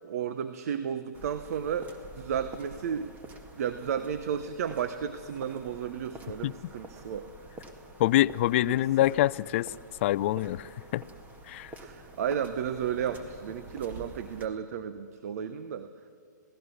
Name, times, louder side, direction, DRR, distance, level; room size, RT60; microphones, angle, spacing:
voice 1, 0.0-3.2 3.5-7.3 8.6-8.8 11.8-15.9, right 8 dB, 50° right, 11 dB, 0.9 m, -33 dB
sound 1, 1.1-14.5, right 2 dB, 15° right, 1.8 m, -48 dB
voice 2, 8.0-9.7 10.0-11.0 11.5-11.7, left 14 dB, 40° left, 17 dB, 0.4 m, -25 dB
27.0 x 17.5 x 6.4 m, 2.3 s
hypercardioid pair, 130°, 10 cm